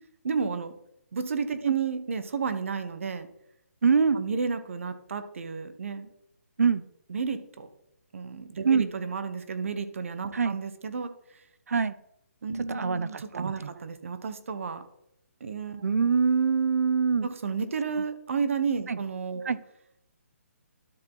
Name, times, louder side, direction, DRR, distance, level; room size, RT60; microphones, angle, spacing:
voice 1, 0.2-0.7 1.1-3.3 4.1-6.1 7.1-7.7 8.1-11.1 12.4-14.8 15.4-15.8 17.2-19.5, right 5 dB, 60° right, 10 dB, 1.1 m, -32 dB
voice 2, 3.8-4.2 6.6-6.8 8.6-8.9 10.3-10.6 11.7-11.9 12.7-13.7 15.8-17.3 18.9-19.0 19.5-19.6, right 5 dB, 75° right, 15 dB, 0.7 m, -24 dB
12.0 x 4.7 x 4.0 m, 0.76 s
hypercardioid pair, 165°, 8 cm